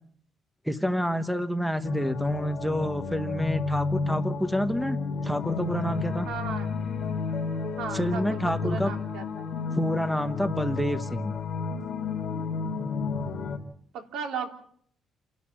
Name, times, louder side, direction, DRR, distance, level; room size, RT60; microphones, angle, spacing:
voice 1, 0.6-5.0 5.2-6.3 7.9-8.9 9.7-11.3, equal, ahead, 7 dB, 1.0 m, -28 dB
sound 1, 1.8-13.6, left 4 dB, 35° left, 4.2 m, -31 dB
voice 2, 6.2-6.7 7.8-9.5 13.9-14.5, right 6 dB, 85° right, 4 dB, 3.5 m, -36 dB
29.5 x 12.0 x 8.7 m, 0.63 s
cardioid pair, 175°, 0 cm